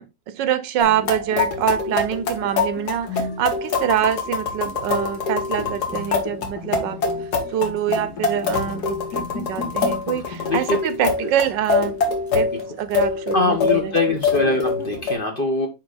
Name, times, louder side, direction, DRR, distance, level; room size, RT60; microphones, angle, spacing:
voice 1, 0.0-7.0 7.5-11.9 12.3-12.5 12.8-13.9, right 10 dB, 80° right, 1.3 m, -25 dB
sound 1, 0.8-15.1, left 4 dB, 60° left, 1.8 m, -25 dB
voice 2, 13.3-15.7, left 3 dB, 35° left, 1.0 m, -22 dB
6.1 x 4.7 x 3.9 m
omnidirectional pair, 1.9 m